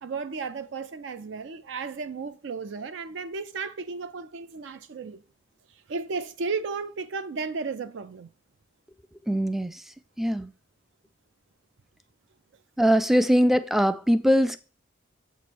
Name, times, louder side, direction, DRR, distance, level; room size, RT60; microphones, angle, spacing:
voice 1, 0.0-5.2 5.9-8.3, right 4 dB, 70° right, 0.4 m, -34 dB
voice 2, 9.3-9.8 10.2-10.5 12.8-14.6, equal, ahead, 0.3 m, -22 dB
7.4 x 3.1 x 6.0 m
head